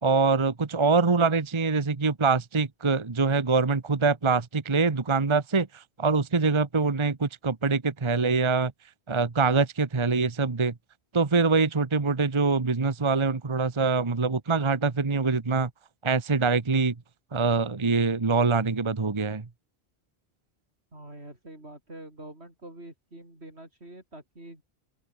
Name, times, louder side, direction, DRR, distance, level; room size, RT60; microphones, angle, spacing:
voice 1, 0.0-8.7 9.1-10.7 11.1-15.7 16.0-16.9 17.3-19.4, right 4 dB, 30° right, 1.1 m, -24 dB
voice 2, 20.9-24.6, right 1 dB, 80° right, 7.4 m, -45 dB
open air
omnidirectional pair, 1.1 m